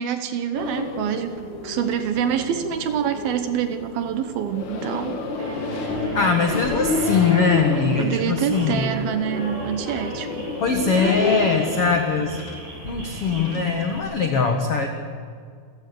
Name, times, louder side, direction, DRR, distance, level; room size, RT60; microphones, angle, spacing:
voice 1, 0.0-5.2 8.0-10.5 10.9-11.2, right 9 dB, 70° right, 9 dB, 2.6 m, -26 dB
sound 1, 0.5-14.2, left 3 dB, 50° left, 3.1 m, -31 dB
sound 2, 5.4-14.0, equal, 35° right, 7.4 m, -35 dB
voice 2, 6.1-8.9 10.6-12.4 12.8-14.9, left 5 dB, 70° left, 4 dB, 1.3 m, -21 dB
27.5 x 16.0 x 6.9 m, 2.1 s
omnidirectional pair, 5.0 m